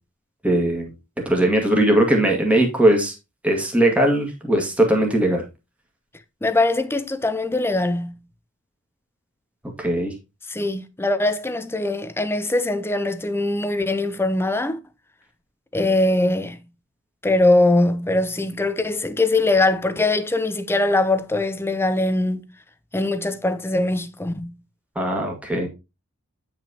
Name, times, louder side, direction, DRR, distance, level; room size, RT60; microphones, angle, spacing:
voice 1, 0.4-0.9 1.3-3.1 3.4-5.4 9.8-10.1 25.0-25.7, right 1 dB, 5° right, 1.8 m, -19 dB
voice 2, 6.4-8.2 10.5-14.8 15.7-16.6 17.2-22.5 22.9-24.6, left 2 dB, 10° left, 0.6 m, -22 dB
8.8 x 5.9 x 2.9 m
head